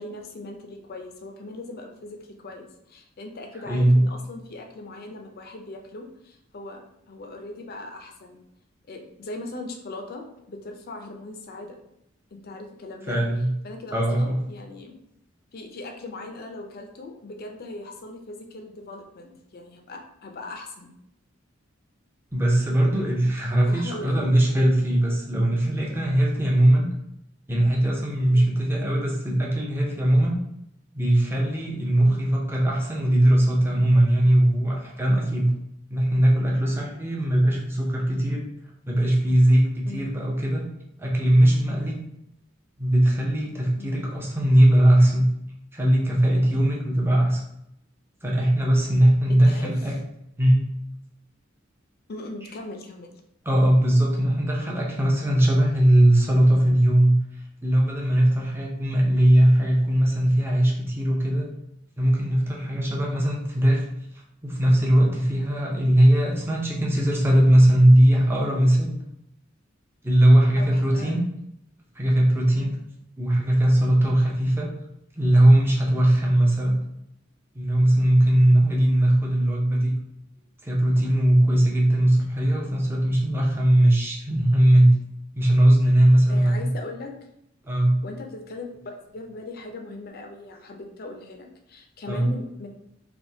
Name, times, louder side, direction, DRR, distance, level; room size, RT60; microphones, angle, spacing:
voice 1, 0.0-8.4 8.9-11.8 12.3-13.2 13.6-15.0 15.5-20.9 23.7-24.3 28.3-28.6 32.0-32.3 39.8-40.1 43.8-44.0 49.3-49.7 52.1-53.2 70.6-71.2 72.6-72.7 86.3-87.1 88.0-92.7, left 2 dB, 50° left, 3 dB, 0.5 m, -39 dB
voice 2, 3.6-4.0 13.1-13.5 13.9-14.4 22.3-26.9 27.5-30.4 30.9-35.5 35.9-38.4 38.8-39.6 39.9-40.6 41.0-41.9 42.8-45.3 45.7-47.4 48.2-49.9 50.4-50.6 53.5-57.2 57.6-61.5 62.0-63.9 64.4-68.9 70.0-71.2 72.0-72.7 73.2-74.7 75.2-76.8 77.5-79.9 80.6-85.0 85.3-86.7 87.6-88.0 92.1-92.3, right 1 dB, 10° right, -3 dB, 0.6 m, -20 dB
3.4 x 2.7 x 2.7 m, 0.78 s
head